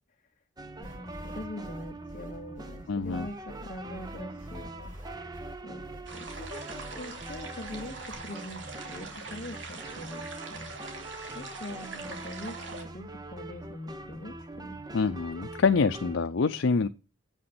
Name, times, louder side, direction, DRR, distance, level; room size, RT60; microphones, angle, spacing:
sound 1, 0.6-16.2, right 2 dB, 20° right, 1.0 m, -43 dB
voice 1, 0.8-4.9 5.6-5.8 6.1-10.7 11.3-14.8, left 1 dB, 45° left, 1.0 m, -43 dB
sound 2, 0.8-8.1, equal, 45° right, 6.1 m, -47 dB
voice 2, 2.9-3.3 14.9-16.9, left 4 dB, 75° left, 0.6 m, -26 dB
sound 3, 6.1-12.8, right 4 dB, 70° right, 2.7 m, -43 dB
7.7 x 6.3 x 7.7 m
head